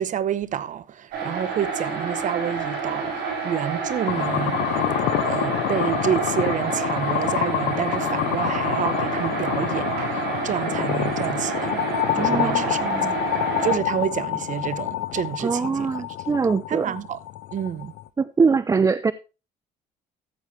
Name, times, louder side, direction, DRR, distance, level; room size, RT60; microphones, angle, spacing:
voice 1, 0.0-4.6 5.3-11.9 12.1-12.9 13.2-13.3 13.6-16.0 16.7-17.2 17.5-17.9, right 9 dB, 50° right, 0.8 m, -28 dB
sound 1, 1.1-13.8, right 5 dB, 75° right, 6.1 m, -29 dB
sound 2, 1.6-3.0 4.0-5.3 6.3-7.7 9.1-9.4 10.4-10.7 11.7-12.1, left 5 dB, 55° left, 6.3 m, -48 dB
sound 3, 4.1-18.1, left 15 dB, 85° left, 0.6 m, -27 dB
voice 2, 12.1-13.1 15.4-16.9 18.2-19.1, right 5 dB, 20° right, 0.4 m, -23 dB
14.0 x 8.4 x 3.2 m
cardioid pair, 110°, 17 cm